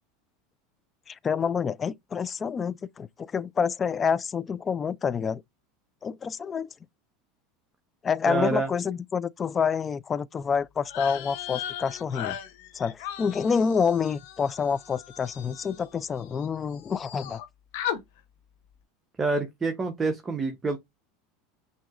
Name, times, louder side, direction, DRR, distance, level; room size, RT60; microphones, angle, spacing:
voice 1, 1.1-5.4 6.0-6.7 8.0-12.4 12.7-17.4, left 6 dB, 25° left, 0.3 m, -28 dB
voice 2, 8.3-8.7 19.2-20.8, right 3 dB, 20° right, 0.8 m, -27 dB
sound 1, 10.8-16.5 16.7-17.4 17.7-18.0, left 10 dB, 70° left, 0.9 m, -37 dB
5.9 x 2.7 x 2.4 m
supercardioid pair, 115°, 0 cm